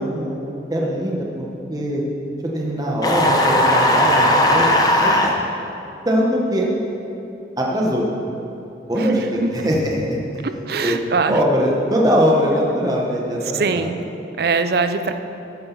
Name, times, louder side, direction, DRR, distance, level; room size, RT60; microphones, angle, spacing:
voice 1, 0.0-2.0 2.4-4.7 5.0-5.1 6.0-6.7 7.6-8.0 8.9-11.0 11.3-13.9, equal, 20° right, -3 dB, 1.2 m, -21 dB
sound 1, 3.0-5.3, left 1 dB, 20° left, 0.9 m, -16 dB
voice 2, 9.0-9.5 10.4-11.4 13.5-14.0 14.4-15.1, right 4 dB, 55° right, 9 dB, 0.5 m, -22 dB
14.0 x 8.7 x 4.0 m, 2.8 s
head